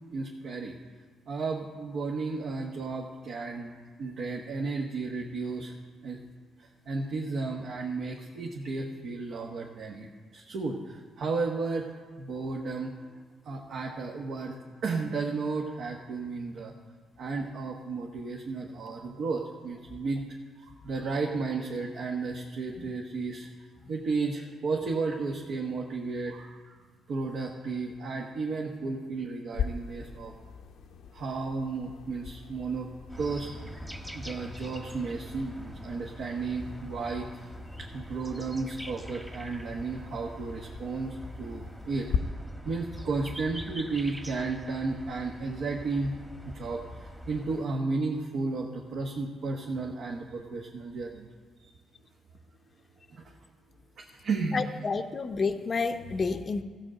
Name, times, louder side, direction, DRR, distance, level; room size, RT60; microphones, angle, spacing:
voice 1, 0.1-0.7 1.3-5.7 6.0-6.2 6.6-13.1 13.4-14.5 14.8-16.7 17.2-20.2 20.6-23.5 23.9-26.6 27.1-30.3 31.1-32.9 33.2-33.5 34.1-37.5 37.8-42.1 42.6-46.1 46.5-51.3 51.6-51.7 53.1-53.3 54.0-54.7, right 3 dB, 65° right, 0 dB, 1.1 m, -33 dB
sound 1, 29.5-42.2, left 7 dB, 75° left, 0.7 m, -41 dB
sound 2, 33.1-47.7, equal, 5° right, 1.1 m, -44 dB
voice 2, 54.5-56.6, left 4 dB, 40° left, 7 dB, 0.6 m, -29 dB
15.5 x 5.1 x 7.5 m, 1.5 s
cardioid pair, 90°, 0 cm